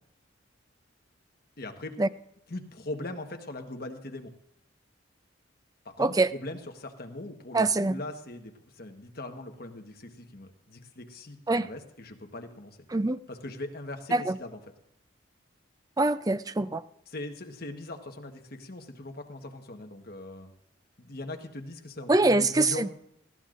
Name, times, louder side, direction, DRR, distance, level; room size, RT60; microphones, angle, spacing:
voice 1, 1.6-2.0 2.5-4.3 5.8-12.8 13.3-14.6 17.1-20.5 21.0-22.9, left 2 dB, 50° left, 5 dB, 1.3 m, -40 dB
voice 2, 7.5-8.0 11.5-11.7 12.9-13.2 14.1-14.4 16.0-16.8 22.1-22.9, right 2 dB, 20° right, 13 dB, 0.4 m, -24 dB
19.5 x 15.0 x 2.5 m, 0.77 s
head